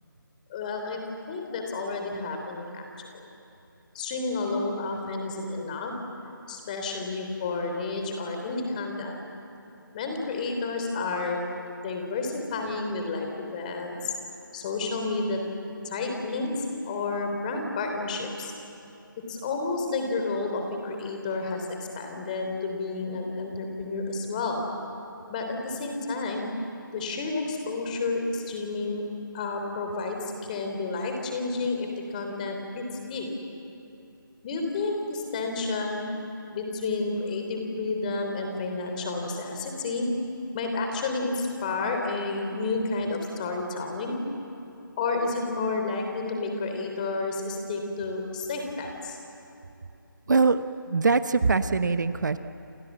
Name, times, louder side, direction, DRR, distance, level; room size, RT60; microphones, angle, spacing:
voice 1, 0.5-1.0 1.3-3.2 3.9-5.9 6.5-9.2 9.9-11.4 11.8-14.1 14.5-15.4 15.8-18.5 19.3-24.6 25.3-26.5 26.9-29.1 29.3-33.3 34.4-36.0 36.5-40.1 40.5-44.2 45.0-49.2, left 3 dB, 20° left, 3 dB, 3.4 m, -30 dB
voice 2, 50.3-52.4, right 4 dB, 55° right, 11 dB, 1.0 m, -23 dB
29.0 x 27.0 x 7.4 m, 2.8 s
figure-of-eight pair, 160°, 12 cm